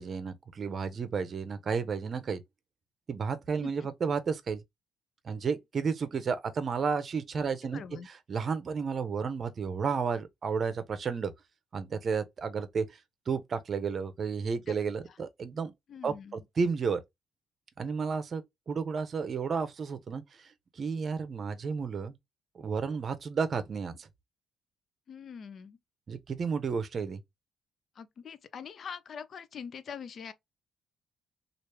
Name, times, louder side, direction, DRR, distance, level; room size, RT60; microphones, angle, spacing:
voice 1, 0.0-2.4 3.1-4.6 5.2-11.3 11.7-12.8 13.3-15.7 16.0-16.1 16.6-17.0 17.8-20.5 20.8-22.1 22.6-24.1 26.1-27.2, right 5 dB, 50° right, 0.7 m, -32 dB
voice 2, 7.7-8.1 14.7-14.8 15.9-16.4 25.1-25.8 28.0-30.3, left 7 dB, 55° left, 0.4 m, -43 dB
3.1 x 2.5 x 3.3 m
cardioid pair, 90°, 0 cm